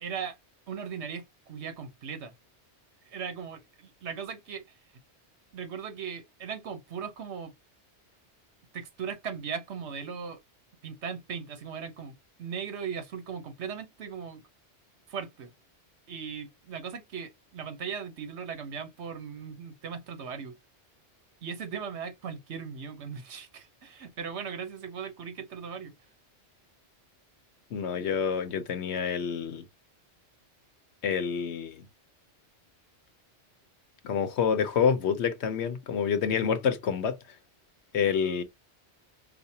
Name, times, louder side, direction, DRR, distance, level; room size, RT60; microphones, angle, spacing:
voice 1, 0.0-0.4 0.7-2.3 3.0-4.6 5.5-7.5 8.7-10.4 10.8-14.4 15.1-15.5 16.1-20.6 21.4-25.9, right 6 dB, 75° right, 1.2 m, -38 dB
voice 2, 27.7-29.6 31.0-31.8 34.0-37.2 37.9-38.4, left 7 dB, 75° left, 0.9 m, -27 dB
5.0 x 2.1 x 2.7 m
omnidirectional pair, 1.2 m